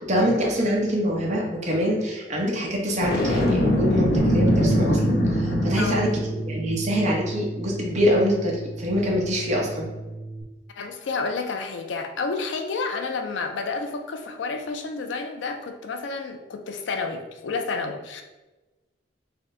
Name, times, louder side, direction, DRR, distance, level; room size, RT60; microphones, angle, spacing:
voice 1, 0.0-9.9, equal, 40° right, -2 dB, 0.9 m, -25 dB
Boom, 3.0-6.2, left 1 dB, 60° left, 0.8 m, -22 dB
Bass guitar, 4.2-10.4, right 3 dB, 10° right, 0.9 m, -29 dB
voice 2, 5.8-6.1 10.8-18.2, left 4 dB, 85° left, 6 dB, 0.4 m, -30 dB
4.2 x 2.1 x 3.7 m, 1.1 s
head